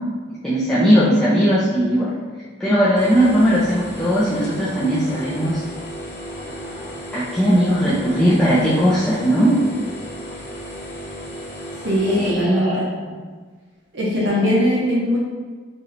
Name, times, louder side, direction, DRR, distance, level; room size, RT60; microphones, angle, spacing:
voice 1, 0.4-2.2 2.6-5.6 7.1-9.6 12.1-12.8 13.1-13.2 14.3-14.5, equal, 5° left, -11 dB, 0.5 m, -18 dB
sound 1, 2.9-12.3, equal, 60° left, 1.1 m, -34 dB
voice 2, 11.8-12.9 13.9-15.2, equal, 70° right, -4 dB, 0.7 m, -20 dB
4.2 x 3.0 x 2.6 m, 1.5 s
head